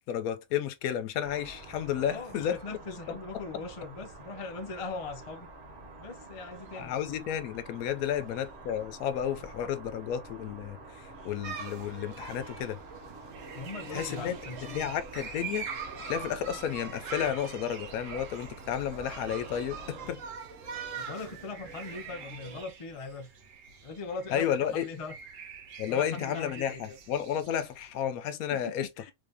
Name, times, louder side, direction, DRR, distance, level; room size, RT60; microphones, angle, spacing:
voice 1, 0.1-2.6 3.1-3.2 6.8-12.8 13.9-14.4 14.7-15.7 16.0-20.2 24.3-24.9 25.8-28.9, left 9 dB, 85° left, 1.1 m, -32 dB
sound 1, 1.2-20.1, right 2 dB, 50° right, 1.3 m, -48 dB
voice 2, 1.9-5.5 6.0-7.0 8.1-8.2 13.5-14.9 20.0-20.1 21.0-23.3 23.8-25.2 25.9-27.0 28.5-29.1, left 3 dB, 45° left, 0.4 m, -40 dB
sound 2, 11.4-22.6, right 6 dB, 65° right, 1.1 m, -42 dB
sound 3, 13.3-28.0, right 5 dB, 90° right, 1.3 m, -50 dB
3.6 x 2.7 x 3.3 m
omnidirectional pair, 1.5 m